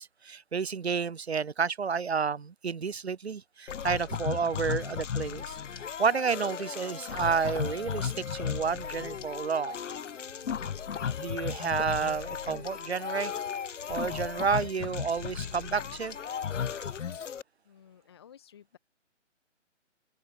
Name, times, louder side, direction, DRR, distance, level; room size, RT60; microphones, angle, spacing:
voice 1, 0.0-9.8 11.2-13.3 13.9-16.2, right 6 dB, 60° right, 0.7 m, -30 dB
sound 1, 3.7-17.4, left 7 dB, 75° left, 0.5 m, -35 dB
sound 2, 10.2-17.2, right 2 dB, 80° right, 4.4 m, -56 dB
voice 2, 17.6-18.8, left 9 dB, 20° left, 1.1 m, -55 dB
open air
figure-of-eight pair, 145°, 37 cm